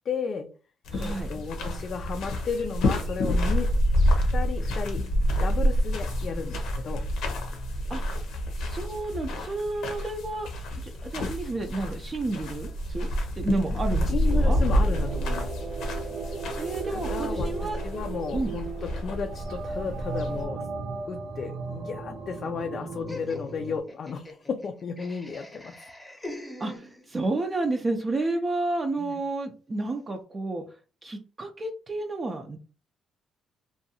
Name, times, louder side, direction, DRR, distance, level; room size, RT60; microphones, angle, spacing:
voice 1, 0.1-0.5 1.0-3.8 4.1-5.1 5.3-7.1 14.1-15.5 16.9-20.7 21.1-25.9 29.0-29.2, left 5 dB, 55° left, 6 dB, 0.3 m, -34 dB
sound 1, 0.8-20.4, equal, 85° left, 0.7 m, -28 dB
voice 2, 0.9-1.3 7.9-8.2 8.6-13.1 13.4-14.6 16.6-17.8 18.3-18.5 26.6-30.6 31.0-32.6, right 2 dB, 30° right, 3 dB, 0.4 m, -31 dB
sound 2, 14.2-23.8, right 4 dB, 70° right, 0.7 m, -36 dB
Laughter, 23.1-27.3, left 2 dB, 15° left, 0.7 m, -43 dB
2.6 x 2.3 x 2.7 m, 0.36 s
cardioid pair, 90°, 0 cm